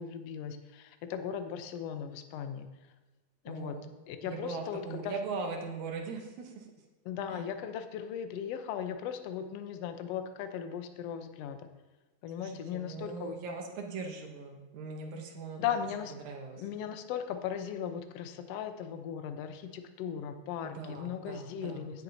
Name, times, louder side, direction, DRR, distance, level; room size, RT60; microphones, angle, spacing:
voice 1, 0.0-2.7 3.5-3.8 4.1-5.1 7.1-11.7 12.2-13.4 15.6-16.1 16.6-22.0, left 8 dB, 70° left, 7 dB, 1.6 m, -37 dB
voice 2, 3.5-3.9 4.2-6.7 7.3-7.4 12.4-15.6 16.1-16.6 20.6-21.9, right 4 dB, 75° right, 2 dB, 2.4 m, -40 dB
17.0 x 7.4 x 2.7 m, 1.2 s
omnidirectional pair, 3.4 m